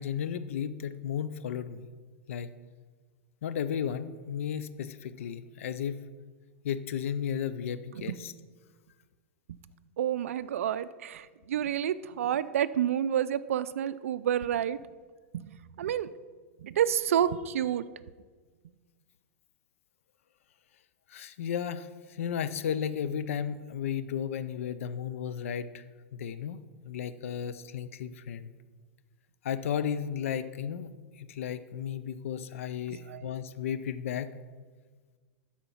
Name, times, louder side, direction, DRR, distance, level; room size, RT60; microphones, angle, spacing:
voice 1, 0.0-1.9 2.3-2.5 3.4-6.0 6.6-8.3 21.1-25.8 26.1-28.5 29.4-34.3, left 8 dB, 75° left, 13 dB, 0.5 m, -34 dB
voice 2, 10.0-14.8 15.3-16.1 16.6-17.9 32.9-33.2, right 10 dB, 80° right, 14 dB, 0.4 m, -29 dB
11.5 x 4.4 x 5.6 m, 1.5 s
hypercardioid pair, 120°, 7 cm